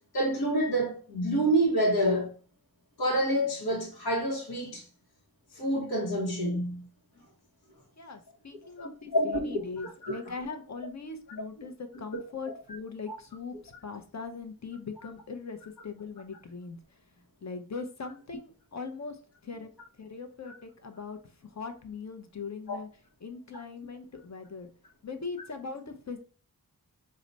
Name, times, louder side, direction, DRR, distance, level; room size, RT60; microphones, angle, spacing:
voice 1, 0.1-2.3 3.0-4.8 5.5-6.9 9.1-10.2 12.1-12.2 13.1-13.2 20.5-20.6 22.7-22.8, right 1 dB, 70° left, 1.1 m, -28 dB
voice 2, 8.0-16.8 17.4-19.2 19.4-19.7 20.0-21.2 21.5-22.9 23.2-24.7 25.0-26.2, left 4 dB, 45° left, 0.8 m, -40 dB
4.8 x 2.2 x 4.0 m
cardioid pair, 55°, 37 cm